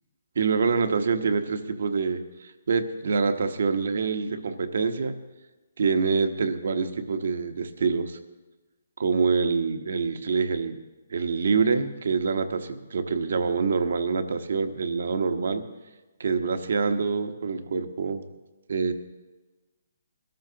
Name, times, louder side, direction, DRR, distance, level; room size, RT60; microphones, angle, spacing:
voice 1, 0.3-5.1 5.8-8.2 9.0-10.8 11.1-15.6 16.2-18.2 18.7-18.9, right 5 dB, 65° right, 8 dB, 1.1 m, -26 dB
21.5 x 13.5 x 2.9 m, 1.2 s
hypercardioid pair, 145°, 0 cm